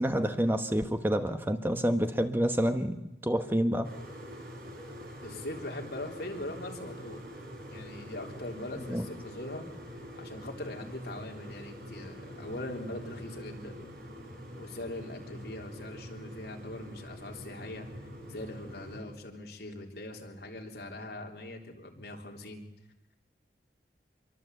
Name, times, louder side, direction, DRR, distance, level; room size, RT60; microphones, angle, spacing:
voice 1, 0.0-3.0 3.2-3.9 8.9-9.0, equal, 10° right, 8 dB, 1.0 m, -28 dB
sound 1, 3.8-19.0, equal, 55° right, 5.7 m, -45 dB
voice 2, 5.2-7.2 7.7-9.6 10.2-13.7 14.6-17.9 18.3-22.6, left 1 dB, 65° left, 1 dB, 3.4 m, -41 dB
25.0 x 23.5 x 8.1 m, 0.93 s
head